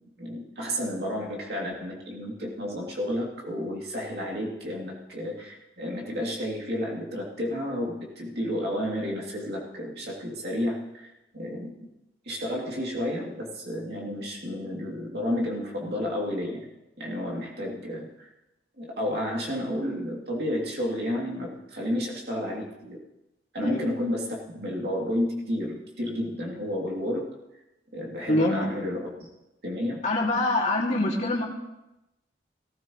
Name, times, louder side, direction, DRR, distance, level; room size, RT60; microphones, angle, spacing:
voice 1, 0.2-11.9 12.2-16.7 17.0-18.3 18.8-23.0 23.5-27.4 27.9-29.1 29.6-30.0, left 1 dB, 65° right, -2 dB, 2.8 m, -31 dB
voice 2, 28.3-28.7 30.0-31.4, left 2 dB, 40° left, -2 dB, 2.4 m, -24 dB
17.5 x 14.5 x 3.1 m, 0.95 s
head